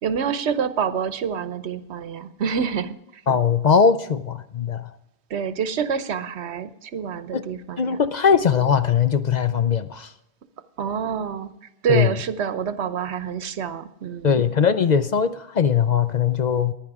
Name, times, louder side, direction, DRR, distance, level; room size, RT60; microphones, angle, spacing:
voice 1, 0.0-2.9 5.3-8.1 10.8-11.5 11.8-14.4, right 7 dB, 85° right, 1.1 m, -27 dB
voice 2, 3.3-4.9 7.3-7.4 7.8-10.1 11.9-12.1 14.2-16.7, left 7 dB, 50° left, 0.6 m, -20 dB
15.0 x 10.5 x 4.8 m
omnidirectional pair, 1.1 m